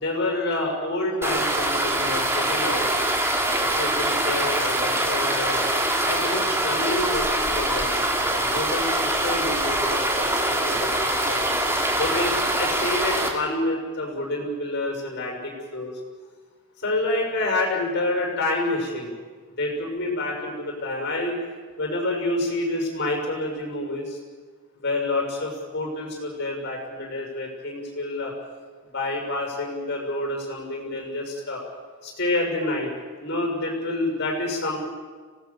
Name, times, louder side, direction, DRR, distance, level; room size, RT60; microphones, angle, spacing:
voice 1, 0.0-2.9 3.7-5.6 6.1-8.0 8.3-11.5 11.9-15.9 16.8-19.1 19.6-21.4 21.8-24.2 24.8-28.3 28.9-31.6 32.0-32.9 33.2-34.8, left 2 dB, 50° left, 1 dB, 6.3 m, -28 dB
sound 1, 1.2-13.3, right 1 dB, 10° right, 2.4 m, -24 dB
25.5 x 18.0 x 7.2 m, 1.5 s
head